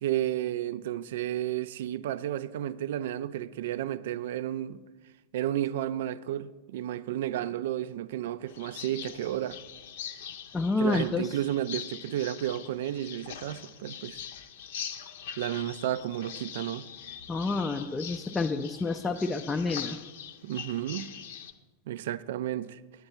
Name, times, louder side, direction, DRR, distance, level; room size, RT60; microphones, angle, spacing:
voice 1, 0.0-4.8 5.3-9.6 10.8-14.2 15.4-16.9 20.4-21.1 21.9-22.8, right 12 dB, 55° right, 0.4 m, -32 dB
sound 1, 8.5-21.5, left 8 dB, 55° left, 0.6 m, -42 dB
voice 2, 10.5-11.3 17.3-20.0, left 3 dB, 15° left, 0.4 m, -29 dB
9.5 x 9.5 x 4.3 m
figure-of-eight pair, 90°, 0 cm